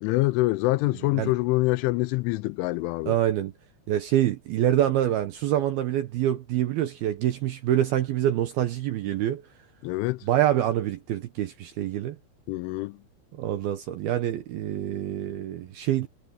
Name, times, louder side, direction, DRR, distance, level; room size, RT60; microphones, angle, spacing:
voice 1, 0.0-3.2 9.8-10.2 12.5-13.0, left 20 dB, 85° left, 3.1 m, -25 dB
voice 2, 3.1-3.5 3.9-9.4 10.2-12.2 13.4-16.1, right 12 dB, 75° right, 2.3 m, -26 dB
omnidirectional pair, 5.5 m